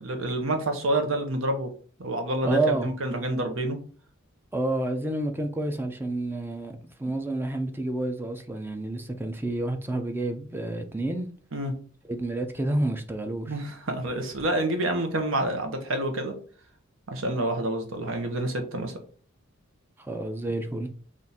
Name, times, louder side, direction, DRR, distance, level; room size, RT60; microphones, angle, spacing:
voice 1, 0.0-1.7 2.0-3.8 11.5-11.7 13.5-16.3 17.1-18.9, right 1 dB, 70° right, 0.9 m, -28 dB
voice 2, 2.4-2.9 4.5-11.3 12.1-13.6 20.0-20.9, right 2 dB, 10° right, 0.4 m, -29 dB
3.6 x 2.5 x 4.1 m
head